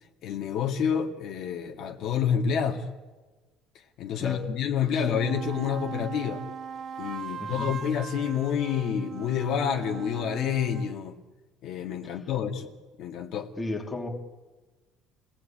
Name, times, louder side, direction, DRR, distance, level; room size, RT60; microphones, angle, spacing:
voice 1, 0.2-2.8 4.0-6.4 7.0-11.2 11.6-12.7 13.0-13.5, left 8 dB, 50° left, 3 dB, 2.0 m, -28 dB
sound 1, 4.8-11.0, right 7 dB, 30° right, 2.1 m, -39 dB
voice 2, 7.4-7.7 13.6-14.1, left 2 dB, 10° left, 2 dB, 2.7 m, -34 dB
30.0 x 18.5 x 8.7 m, 1.2 s
cardioid pair, 170°, 0 cm